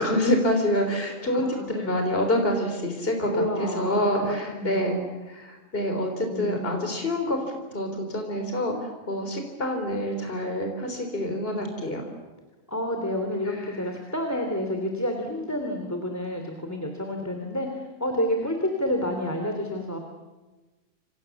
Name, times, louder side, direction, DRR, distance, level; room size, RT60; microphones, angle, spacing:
voice 1, 0.0-4.9 5.3-12.1 13.4-13.8, left 1 dB, 45° left, 4 dB, 4.0 m, -27 dB
voice 2, 1.4-1.9 3.3-4.0 4.3-5.2 6.3-7.0 12.7-20.0, left 1 dB, 10° left, 4 dB, 3.2 m, -29 dB
28.5 x 28.0 x 7.2 m, 1.2 s
omnidirectional pair, 1.4 m